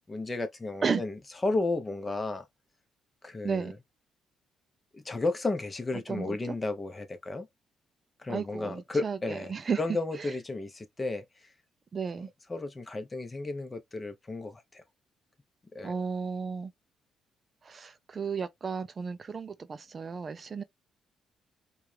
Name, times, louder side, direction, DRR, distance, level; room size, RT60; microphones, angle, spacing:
voice 1, 0.1-1.1 1.4-2.5 3.2-3.7 4.9-7.5 8.2-9.5 9.8-11.2 12.5-14.8 15.7-16.0, left 2 dB, 25° left, 0.9 m, -33 dB
voice 2, 3.4-3.8 5.9-6.6 8.3-9.8 10.1-10.4 11.9-12.3 15.8-16.7 17.6-20.6, right 5 dB, 40° right, 0.4 m, -33 dB
4.6 x 2.4 x 3.3 m
cardioid pair, 90°, 0 cm